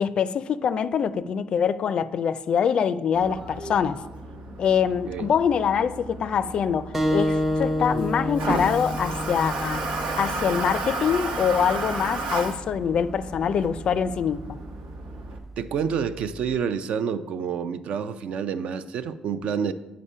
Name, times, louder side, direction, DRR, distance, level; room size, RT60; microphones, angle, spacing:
voice 1, 0.0-4.0 4.6-9.9 10.2-14.6, left 7 dB, 45° left, 0.4 m, -24 dB
Toilet flush, 3.1-15.4, right 2 dB, 90° right, 1.2 m, -33 dB
sound 1, 6.9-12.1, equal, 15° right, 0.7 m, -29 dB
voice 2, 15.6-19.7, right 7 dB, 65° right, 0.5 m, -28 dB
8.6 x 5.1 x 5.5 m
cardioid pair, 140°, 2 cm